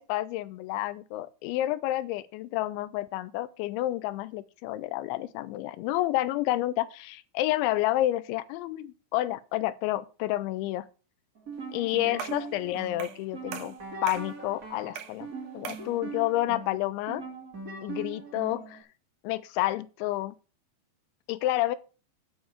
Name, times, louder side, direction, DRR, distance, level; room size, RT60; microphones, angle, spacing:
voice 1, 0.0-10.9 11.7-13.8 14.0-15.3 15.5-17.2 17.8-18.8 19.2-20.4 21.3-21.8, left 15 dB, 85° left, 2.9 m, -29 dB
sound 1, 11.3-18.8, right 4 dB, 60° right, 0.8 m, -41 dB
sound 2, 12.2-12.5 13.0-13.2 13.5-14.3 14.9-15.2 15.6-15.9, right 8 dB, 80° right, 2.2 m, -39 dB
8.9 x 5.2 x 7.2 m
omnidirectional pair, 5.5 m